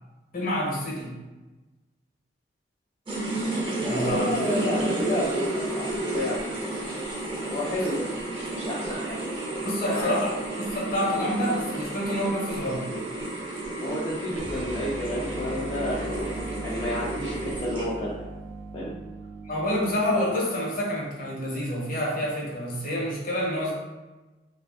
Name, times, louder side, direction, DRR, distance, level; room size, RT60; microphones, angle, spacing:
voice 1, 0.3-1.1 3.8-4.3 7.7-7.8 9.6-10.3 10.6-12.8 19.5-23.7, equal, 50° left, -3 dB, 0.8 m, -28 dB
sound 1, 3.1-18.1, right 1 dB, 30° right, 0.6 m, -31 dB
voice 2, 3.8-7.0 7.4-9.4 9.8-10.2 13.8-18.3 18.7-18.9, left 1 dB, 30° left, -7 dB, 0.4 m, -31 dB
sound 2, 14.3-20.4, right 2 dB, 80° right, 0.5 m, -39 dB
3.3 x 2.5 x 2.2 m, 1.1 s
head